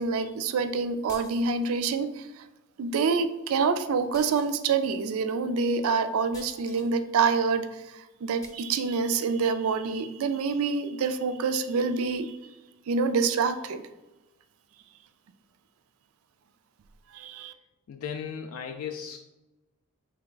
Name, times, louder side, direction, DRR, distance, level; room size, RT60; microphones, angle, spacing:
voice 1, 0.0-2.5 2.8-12.4 12.9-13.9 17.1-17.5, right 5 dB, 70° right, 10 dB, 0.4 m, -27 dB
sound 1, 1.1-1.8 4.1-4.9 6.3-6.9 8.4-8.7, left 2 dB, 15° left, 0.6 m, -49 dB
voice 2, 17.9-19.2, left 7 dB, 75° left, 4 dB, 0.3 m, -36 dB
3.5 x 3.2 x 3.8 m, 1.0 s
head